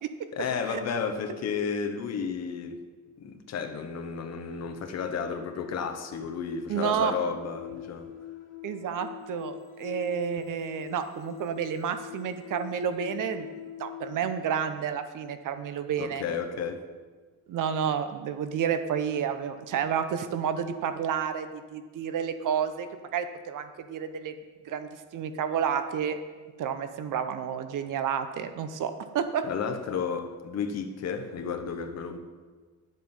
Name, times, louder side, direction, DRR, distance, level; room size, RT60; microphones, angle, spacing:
voice 1, 0.3-2.8 3.2-8.1 16.0-16.8 29.4-32.2, left 6 dB, 55° left, 6 dB, 1.0 m, -32 dB
voice 2, 6.7-7.1 8.6-13.5 13.8-16.2 17.5-24.3 24.7-26.2 26.6-29.4, right 8 dB, 75° right, 9 dB, 0.8 m, -30 dB
sound 1, 6.8-14.3, left 13 dB, 70° left, 1.8 m, -43 dB
10.5 x 7.6 x 5.4 m, 1.4 s
cardioid pair, 165°, 32 cm